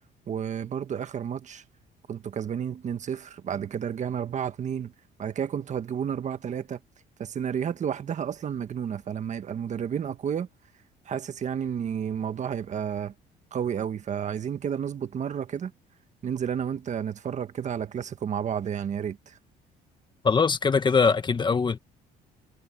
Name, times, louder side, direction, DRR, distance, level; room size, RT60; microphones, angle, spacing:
voice 1, 0.3-1.6 2.1-4.9 5.2-6.8 7.2-10.5 11.0-13.1 13.5-15.7 16.2-19.4, right 8 dB, 45° right, 1.6 m, -31 dB
voice 2, 20.2-21.8, left 5 dB, 25° left, 1.5 m, -22 dB
cardioid pair, 110°, 17 cm